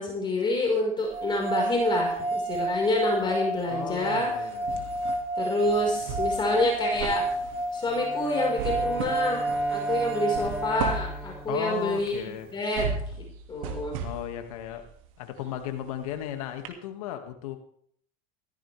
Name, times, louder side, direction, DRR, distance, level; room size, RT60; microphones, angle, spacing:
voice 1, 0.0-4.3 5.4-7.2 7.7-12.3 12.5-12.9 13.5-13.9, left 2 dB, 25° left, 0 dB, 5.1 m, -28 dB
sound 1, 1.0-2.2 2.5-16.2 16.6-16.7, right 6 dB, 75° right, 2.5 m, -38 dB
sound 2, 1.1-11.3, right 2 dB, 35° right, 2.1 m, -30 dB
voice 2, 3.7-4.9 11.5-12.5 14.0-14.8 15.2-17.6, left 10 dB, 80° left, 6 dB, 2.3 m, -35 dB
Bowed string instrument, 7.9-12.7, right 2 dB, 5° right, 1.6 m, -42 dB
15.5 x 15.0 x 3.5 m, 0.63 s
hypercardioid pair, 100°, 18 cm